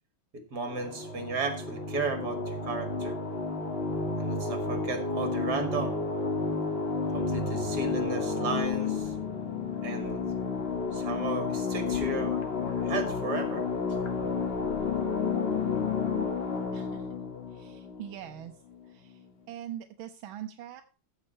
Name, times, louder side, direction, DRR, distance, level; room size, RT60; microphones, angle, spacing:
voice 1, 0.3-3.1 4.2-6.0 7.1-9.1 9.8-10.2 10.9-12.5 12.8-13.6, right 4 dB, 55° right, 7 dB, 2.7 m, -34 dB
sound 1, 0.6-18.7, left 4 dB, 30° left, 1.6 m, -32 dB
sound 2, 7.1-16.3, left 15 dB, 65° left, 2.3 m, -37 dB
voice 2, 16.7-17.2 17.5-18.5 18.9-19.2 19.5-20.8, right 11 dB, 80° right, 6 dB, 1.6 m, -42 dB
15.0 x 6.7 x 4.3 m, 0.34 s
omnidirectional pair, 2.2 m